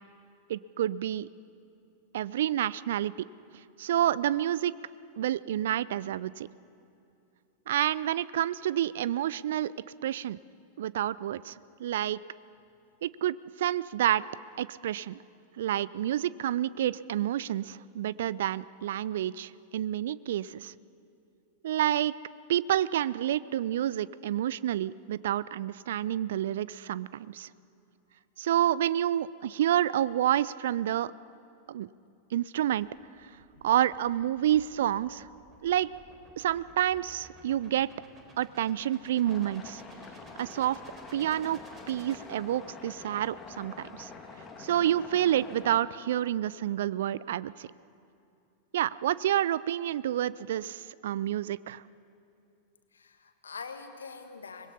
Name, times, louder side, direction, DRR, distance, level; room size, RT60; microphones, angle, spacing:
voice 1, 0.5-1.3 2.1-3.3 3.8-4.8 5.2-6.5 7.7-9.7 10.0-10.4 10.8-12.2 13.0-14.2 14.6-15.2 15.6-20.7 21.6-22.1 22.5-27.5 28.4-31.1 31.7-31.9 32.3-32.9 33.6-35.3 35.6-35.9 36.4-37.9 38.4-39.8 40.4-40.8 41.1-41.6 41.9-44.1 44.6-47.7 48.7-51.8, right 11 dB, 60° right, 20 dB, 0.4 m, -29 dB
sound 1, 32.6-42.9, right 2 dB, 25° right, 4.0 m, -56 dB
sound 2, 39.2-45.8, left 4 dB, 20° left, 2.2 m, -46 dB
voice 2, 52.9-54.7, left 5 dB, 70° left, 7 dB, 1.6 m, -45 dB
24.0 x 21.0 x 5.6 m, 2.7 s
figure-of-eight pair, 90°, 0 cm